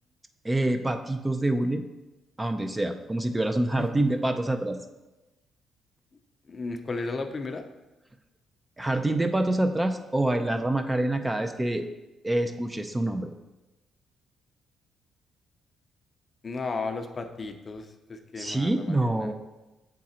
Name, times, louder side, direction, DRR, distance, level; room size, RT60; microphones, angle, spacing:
voice 1, 0.4-1.8 2.4-4.8 8.8-11.8 12.2-13.3 18.4-19.3, right 1 dB, 15° right, 7 dB, 0.5 m, -26 dB
voice 2, 6.5-7.6 16.4-19.3, left 3 dB, 40° left, 7 dB, 0.6 m, -34 dB
7.5 x 3.8 x 4.3 m, 1.0 s
cardioid pair, 80°, 0 cm